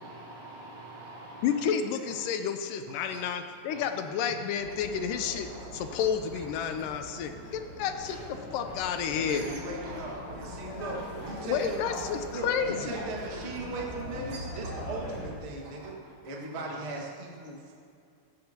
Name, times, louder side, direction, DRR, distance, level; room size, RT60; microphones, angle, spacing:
voice 1, 0.0-1.6 2.1-2.2 3.1-3.2 3.7-3.9 5.5-5.9 6.6-6.7 8.6-8.8 9.3-10.1 10.4-10.6 10.8-11.3 14.3-14.4 15.6-16.1 16.5-16.9, right 2 dB, 65° right, -6 dB, 4.7 m, -45 dB
voice 2, 1.4-9.5 11.5-12.9, left 7 dB, 80° left, 7 dB, 2.3 m, -31 dB
sound 1, 4.6-15.3, left 1 dB, 40° left, 4.6 m, -41 dB
voice 3, 9.0-11.8 12.3-16.0 16.2-17.7, right 2 dB, 25° right, -2 dB, 1.4 m, -38 dB
16.5 x 14.5 x 2.9 m, 2.4 s
omnidirectional pair, 3.9 m